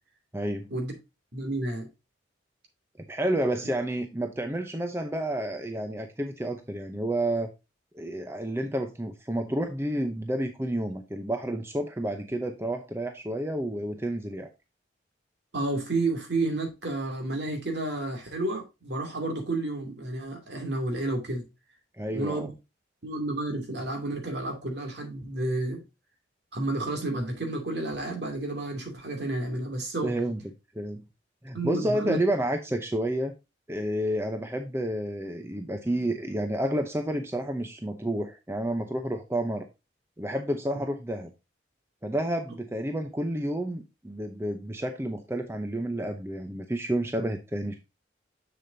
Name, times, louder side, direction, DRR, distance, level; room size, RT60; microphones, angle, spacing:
voice 1, 0.3-0.7 3.1-7.5 7.9-14.5 22.0-22.5 30.0-30.4 30.7-31.0 31.4-33.3 33.7-39.7 40.2-41.3 42.0-47.7, right 1 dB, 15° right, 0.7 m, -30 dB
voice 2, 1.3-1.9 15.5-21.4 22.1-22.5 23.0-25.8 26.5-30.1 31.5-32.2 40.7-40.8, right 2 dB, 60° right, 2.5 m, -31 dB
7.1 x 7.0 x 2.7 m
head